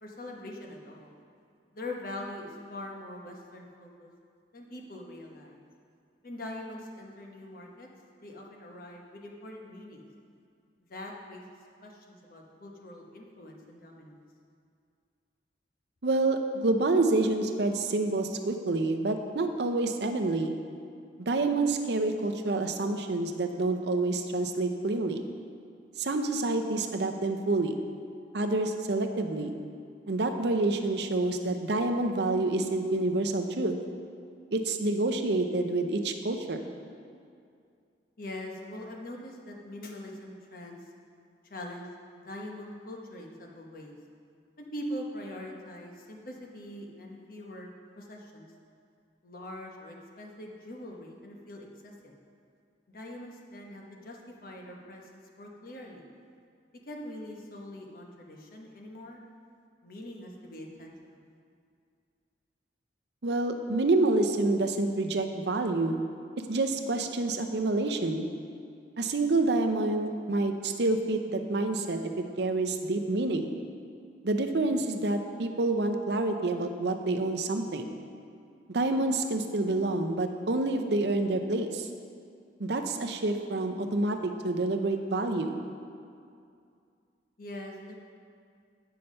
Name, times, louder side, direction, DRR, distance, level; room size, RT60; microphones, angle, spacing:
voice 1, 0.0-1.1 1.7-4.1 4.5-5.6 6.2-7.9 8.2-10.1 10.9-11.4 11.8-14.2 38.2-40.8 41.5-41.9 42.2-43.9 44.6-47.7 48.0-48.5 49.2-52.1 52.9-56.0 56.9-59.2 59.8-61.2 87.4-87.9, left 1 dB, 50° left, 0 dB, 1.1 m, -43 dB
voice 2, 16.0-20.5 21.2-25.2 26.0-27.8 28.3-29.5 30.1-33.8 34.5-36.7 63.2-66.0 66.5-68.3 69.0-72.1 72.4-73.5 74.2-77.9 78.7-81.9 82.6-85.6, right 2 dB, 65° right, 5 dB, 0.7 m, -28 dB
9.3 x 5.7 x 5.4 m, 2.3 s
head